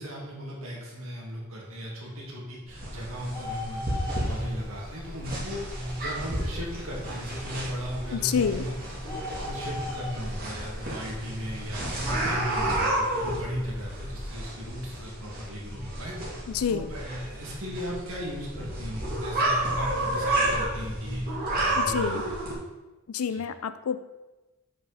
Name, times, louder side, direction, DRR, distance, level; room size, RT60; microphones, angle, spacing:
voice 1, 0.0-5.7 6.0-8.8 9.1-16.1 16.7-21.3 21.6-22.4 23.3-23.4, equal, 70° right, -3 dB, 2.2 m, -37 dB
sound 1, 2.7-22.5, right 1 dB, 45° right, 2.3 m, -31 dB
Bird, 3.2-14.3, left 3 dB, 10° left, 2.2 m, -44 dB
voice 2, 8.1-8.6 16.5-16.9 21.7-22.2 23.1-24.0, left 7 dB, 80° left, 13 dB, 0.4 m, -28 dB
7.3 x 5.4 x 4.2 m, 1.1 s
head